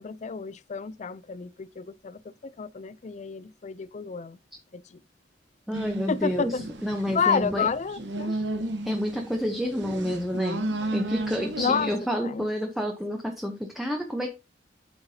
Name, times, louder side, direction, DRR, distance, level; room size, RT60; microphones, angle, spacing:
voice 1, 0.0-4.4 4.7-5.0 6.1-6.7 7.1-8.4 11.6-11.9 12.2-12.5, left 6 dB, 40° left, 0.4 m, -30 dB
voice 2, 5.7-7.7 8.3-8.4 8.8-14.3, equal, ahead, 0.8 m, -29 dB
sound 1, 5.7-12.0, right 2 dB, 85° right, 1.1 m, -33 dB
8.7 x 5.9 x 2.8 m
head